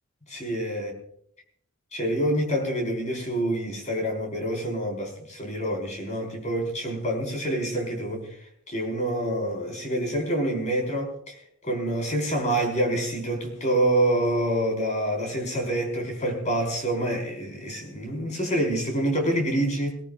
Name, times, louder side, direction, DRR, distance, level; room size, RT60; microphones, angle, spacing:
voice 1, 0.3-0.9 1.9-8.3 8.7-20.0, right 1 dB, 35° left, 1 dB, 5.3 m, -27 dB
21.5 x 19.5 x 2.6 m, 0.67 s
head